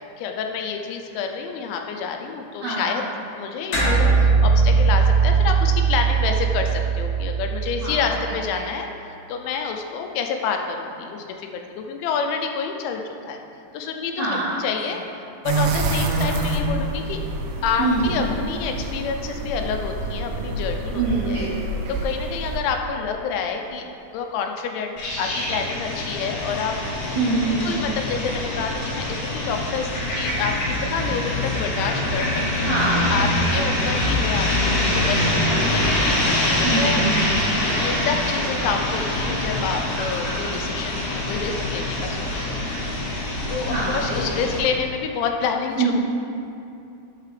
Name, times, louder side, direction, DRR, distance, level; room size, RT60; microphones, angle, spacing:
voice 1, 0.2-3.0 3.4-13.4 13.7-14.3 14.6-17.2 17.6-21.4 22.0-23.8 24.1-26.8 27.5-32.3 32.6-34.7 35.1-36.1 36.7-37.0 37.8-42.8 43.5-46.0, left 6 dB, 85° left, 4 dB, 3.0 m, -28 dB
voice 2, 2.6-3.0 7.8-8.1 8.5-8.6 14.2-14.5 14.8-15.0 17.8-18.2 20.9-21.7 27.2-27.8 32.6-33.1 36.6-37.3 43.6-44.0 45.8-46.0, right 3 dB, 65° right, -10 dB, 1.9 m, -24 dB
sound 1, 3.7-8.5, right 5 dB, 50° left, 2.9 m, -19 dB
sound 2, 15.5-22.6, right 2 dB, 90° right, 2.2 m, -27 dB
sound 3, 25.0-44.6, left 1 dB, 70° left, 3.1 m, -24 dB
10.5 x 6.7 x 3.3 m, 2.6 s
omnidirectional pair, 5.2 m